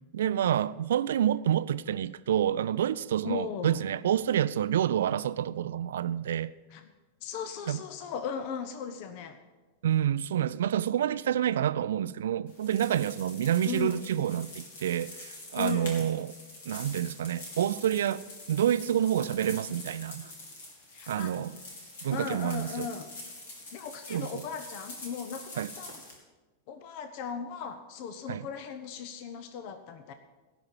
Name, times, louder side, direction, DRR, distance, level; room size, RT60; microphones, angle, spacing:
voice 1, 0.1-6.5 7.7-7.8 9.8-16.3 16.7-18.2 18.5-20.3 21.1-21.5 22.0-22.9 24.1-24.3 25.6-25.7 28.3-28.5, right 10 dB, 60° right, 0.4 m, -28 dB
voice 2, 3.2-3.8 6.7-6.8 7.2-9.4 13.6-14.0 15.6-16.0 20.9-21.3 22.1-23.1 23.7-26.0 26.7-30.1, left 7 dB, 45° left, 0.8 m, -37 dB
sound 1, 12.5-26.1, left 2 dB, 60° left, 3.0 m, -46 dB
17.5 x 5.9 x 7.2 m
figure-of-eight pair, 90°, 0 cm